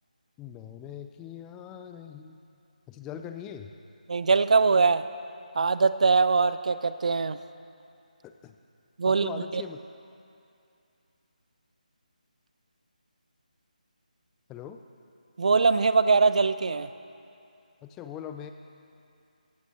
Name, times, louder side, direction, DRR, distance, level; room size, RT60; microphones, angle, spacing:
voice 1, 0.4-2.4 2.9-3.7 8.2-8.5 9.1-9.8 14.5-14.8 17.8-18.5, left 9 dB, 10° left, 7 dB, 0.4 m, -41 dB
voice 2, 4.1-5.0 5.6-7.4 9.0-9.6 15.4-16.9, right 4 dB, 55° right, 13 dB, 0.6 m, -22 dB
17.0 x 14.5 x 4.3 m, 2.6 s
figure-of-eight pair, 155°, 5 cm